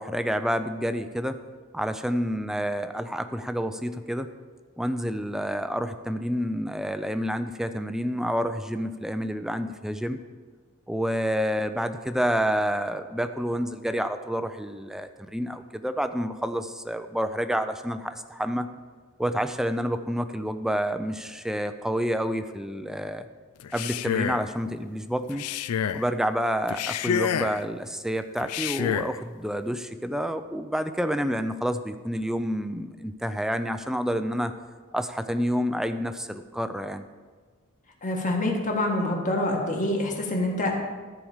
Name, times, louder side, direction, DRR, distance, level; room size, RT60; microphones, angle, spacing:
voice 1, 0.0-1.4 1.7-4.3 4.8-10.2 10.9-18.7 19.2-23.3 23.7-25.4 25.9-34.5 34.9-37.0, equal, ahead, 9 dB, 0.4 m, -29 dB
Male speech man speaking, 23.6-24.5 25.3-26.1 26.7-27.6 28.4-29.2, left 8 dB, 80° left, 0.4 m, -28 dB
voice 2, 38.0-40.7, left 1 dB, 35° left, 0 dB, 1.7 m, -26 dB
14.0 x 4.8 x 7.2 m, 1.5 s
head